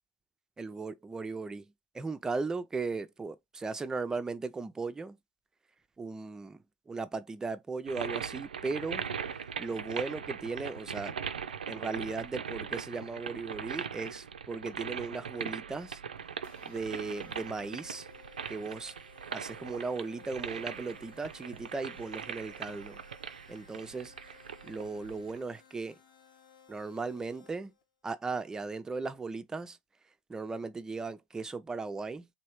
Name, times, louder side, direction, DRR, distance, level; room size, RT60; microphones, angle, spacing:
voice 1, 0.6-5.2 6.0-9.0 9.6-11.1 11.7-16.0 16.6-18.1 18.5-18.9 19.3-23.0 23.5-24.3 24.6-26.0 26.7-27.7 28.0-29.8 30.3-32.3, right 4 dB, 15° right, 0.4 m, -37 dB
sound 1, 7.9-25.4, right 7 dB, 90° right, 0.3 m, -40 dB
sound 2, 16.4-27.8, left 6 dB, 75° left, 1.1 m, -58 dB
3.1 x 2.7 x 2.9 m
hypercardioid pair, 95°, 5 cm